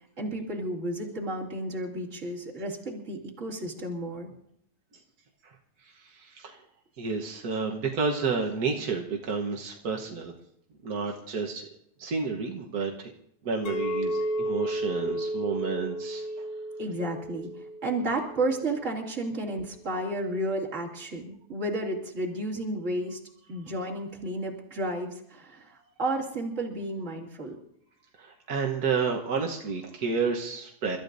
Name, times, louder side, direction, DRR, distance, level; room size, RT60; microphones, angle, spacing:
voice 1, 0.2-4.3 16.8-23.2 23.5-27.6, right 1 dB, 25° right, -3 dB, 2.6 m, -32 dB
voice 2, 5.4-6.6 7.0-10.3 10.8-11.7 12.0-13.1 13.4-16.5 28.2-31.0, right 5 dB, 60° right, 0 dB, 0.9 m, -31 dB
Chink clink, 13.7-18.8, right 1 dB, 70° left, 2.7 m, -33 dB
30.0 x 13.5 x 2.7 m, 0.70 s
omnidirectional pair, 3.4 m